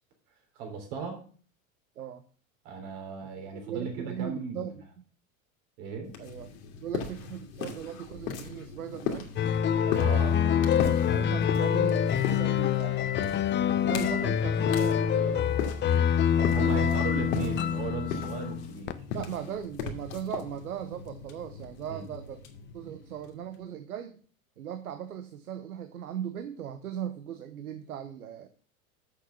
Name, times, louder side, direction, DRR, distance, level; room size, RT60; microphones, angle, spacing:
voice 1, 0.5-1.2 2.6-4.7 5.8-6.1 10.0-10.3 16.4-19.0 21.9-22.1, right 5 dB, 60° right, 3 dB, 3.4 m, -36 dB
voice 2, 3.7-5.0 6.2-6.5 6.8-9.3 9.8-13.1 13.8-15.5 16.6-17.0 19.1-22.4 22.7-24.2 24.6-28.5, right 9 dB, 90° right, 9 dB, 0.9 m, -38 dB
sound 1, 6.0-23.6, left 6 dB, 70° left, 2.0 m, -39 dB
sound 2, 9.4-18.9, left 8 dB, 25° left, 0.7 m, -26 dB
6.6 x 6.2 x 7.0 m, 0.43 s
hypercardioid pair, 95°, 42 cm